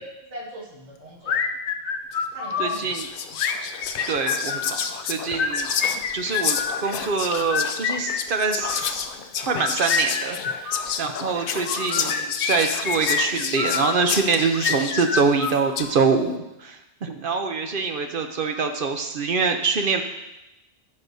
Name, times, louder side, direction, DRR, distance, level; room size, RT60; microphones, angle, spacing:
voice 1, 0.0-1.5 2.3-2.9, right 1 dB, 85° right, -4 dB, 2.1 m, -39 dB
sound 1, 1.3-2.8 3.4-4.8 5.3-6.8 7.3-8.9 9.5-10.9 11.6-14.0 14.5-16.0, left 6 dB, 85° left, 1.0 m, -27 dB
Whispering, 2.1-2.3 2.7-16.0, left 7 dB, 60° left, 0.7 m, -30 dB
voice 2, 2.6-3.1 4.1-4.8 5.1-5.7 6.1-9.0 9.5-20.0, right 4 dB, 55° right, 6 dB, 0.8 m, -25 dB
14.5 x 5.7 x 2.7 m, 0.93 s
omnidirectional pair, 1.1 m